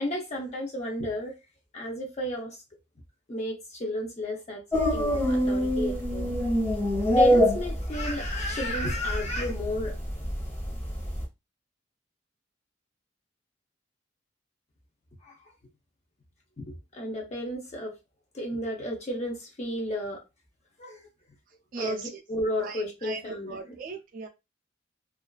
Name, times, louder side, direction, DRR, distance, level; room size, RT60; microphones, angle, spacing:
voice 1, 0.0-1.3 1.7-2.6 3.3-4.6 4.9-6.4 7.2-9.9 15.2-15.4 16.6-17.9 18.3-20.2 20.8-21.1 21.8-23.8, left 1 dB, 35° left, 0.6 m, -32 dB
sound 1, 4.7-11.2, equal, 15° left, 0.9 m, -26 dB
voice 2, 21.7-22.1 22.6-24.3, right 4 dB, 45° right, 0.4 m, -38 dB
2.4 x 2.3 x 2.2 m
head